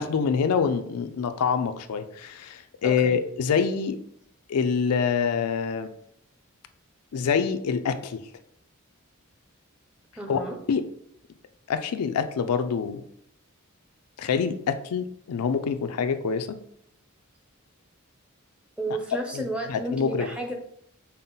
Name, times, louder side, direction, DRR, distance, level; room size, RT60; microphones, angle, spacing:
voice 1, 0.0-4.0 4.5-5.9 7.1-8.2 10.3-10.4 10.7-10.9 11.7-13.0 14.2-16.6 19.3-19.4 19.7-20.3, left 6 dB, 85° left, 9 dB, 0.4 m, -26 dB
voice 2, 2.8-3.1 10.2-10.6 18.8-20.5, right 1 dB, 5° right, 2 dB, 0.5 m, -32 dB
5.5 x 2.1 x 3.8 m, 0.69 s
head